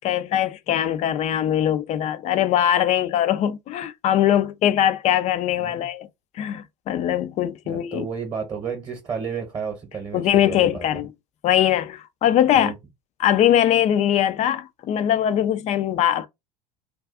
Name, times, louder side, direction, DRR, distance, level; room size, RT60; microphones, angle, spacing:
voice 1, 0.0-6.1 6.4-8.1 10.1-11.1 11.4-12.7 13.2-16.3, left 11 dB, 35° left, 0.4 m, -21 dB
voice 2, 7.6-11.0 12.5-12.7, right 6 dB, 20° right, 0.9 m, -32 dB
2.4 x 2.3 x 3.6 m
hypercardioid pair, 80°, 21 cm